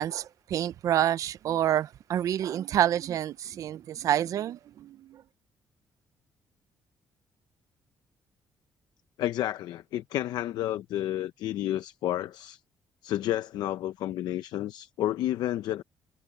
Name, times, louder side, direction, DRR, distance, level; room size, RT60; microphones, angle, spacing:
voice 1, 0.0-5.2, right 11 dB, 50° right, 0.4 m, -28 dB
voice 2, 9.2-12.6 13.0-15.8, left 13 dB, 80° left, 0.6 m, -31 dB
cardioid pair, 180°, 7 cm